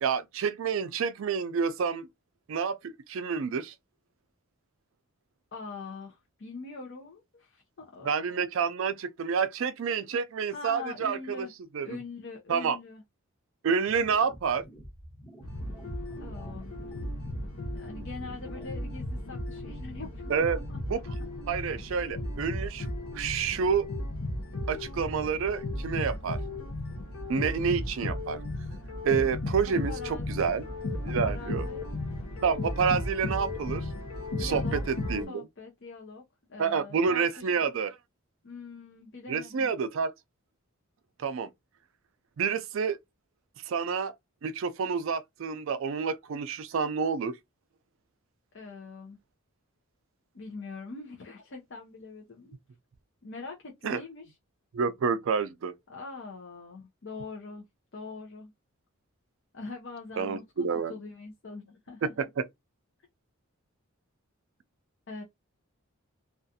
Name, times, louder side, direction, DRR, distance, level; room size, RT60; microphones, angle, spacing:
voice 1, 0.0-2.1 2.5-3.7 8.0-11.5 11.7-11.9 12.5-12.8 13.6-14.6 20.3-20.6 20.9-21.0 21.5-22.9 23.1-23.9 24.7-26.4 27.3-28.4 29.0-30.6 31.0-31.7 32.4-33.8 34.4-35.5 36.6-38.0 39.3-40.1 41.2-41.5 42.4-43.0 43.7-44.1 44.4-47.4 53.8-54.0 54.7-55.7 60.2-60.9 62.0-62.5, right 6 dB, 65° right, 0.3 m, -28 dB
voice 2, 5.5-8.4 10.5-11.5 11.8-13.0 16.2-16.7 17.7-20.8 29.9-30.6 31.1-31.9 34.4-34.8 35.3-36.2 36.5-37.7 38.4-39.8 48.5-49.2 50.3-52.6 53.2-54.3 55.9-57.6 57.9-58.5 59.5-60.4 60.9-62.1 65.1-65.2, left 3 dB, 55° left, 0.6 m, -43 dB
sound 1, 13.9-18.9, equal, 25° left, 1.0 m, -48 dB
sound 2, 15.4-35.3, left 1 dB, 90° left, 0.7 m, -35 dB
2.4 x 2.3 x 2.6 m
head